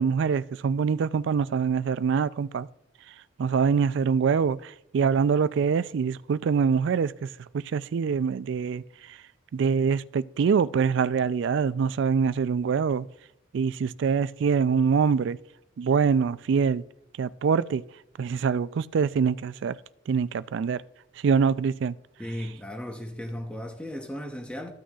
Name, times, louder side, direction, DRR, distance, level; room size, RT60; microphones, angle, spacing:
voice 1, 0.0-2.7 3.4-7.3 7.5-8.8 9.1-9.2 9.5-13.1 13.5-15.4 15.8-16.8 17.2-17.8 18.2-19.8 20.1-20.8 21.2-21.9, right 6 dB, 65° right, 0.3 m, -24 dB
voice 2, 22.2-24.7, equal, 5° left, 0.7 m, -36 dB
14.0 x 6.3 x 2.4 m
head